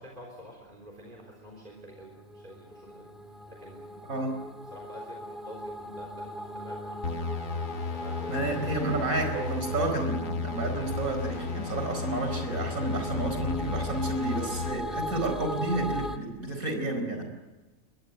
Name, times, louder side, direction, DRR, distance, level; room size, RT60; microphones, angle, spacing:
voice 1, 0.0-3.1 3.5-7.3 7.9-8.8 14.6-15.0 17.1-17.2, equal, 35° right, 0 dB, 3.9 m, -49 dB
sound 1, 1.3-16.2, equal, ahead, 2.0 m, -39 dB
sound 2, 7.0-14.7, left 4 dB, 75° left, 1.7 m, -34 dB
voice 2, 8.3-17.2, right 2 dB, 85° right, 4 dB, 5.1 m, -31 dB
26.0 x 21.5 x 7.8 m, 1.2 s
omnidirectional pair, 1.4 m